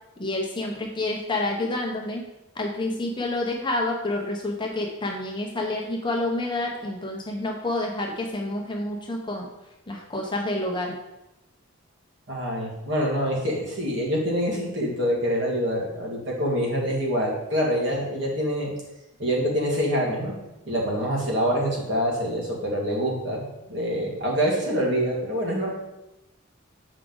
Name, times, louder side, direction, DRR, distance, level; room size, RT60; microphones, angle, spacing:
voice 1, 0.2-2.2 2.5-9.5 9.9-11.0, left 2 dB, 20° left, 0 dB, 0.8 m, -28 dB
voice 2, 12.3-18.7 19.2-20.3 20.7-25.7, equal, 55° right, -3 dB, 1.9 m, -25 dB
7.4 x 4.9 x 3.8 m, 0.95 s
head